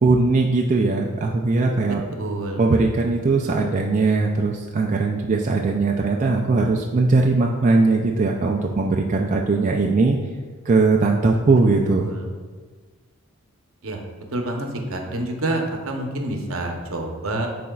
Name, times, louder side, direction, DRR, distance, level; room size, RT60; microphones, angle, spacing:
voice 1, 0.0-2.0 2.6-10.2 10.6-12.1, right 3 dB, 35° right, 0 dB, 0.3 m, -19 dB
voice 2, 2.2-2.6 11.9-12.2 13.8-14.0 14.3-17.5, right 1 dB, 65° right, 2 dB, 0.8 m, -28 dB
10.0 x 4.2 x 2.3 m, 1.4 s
head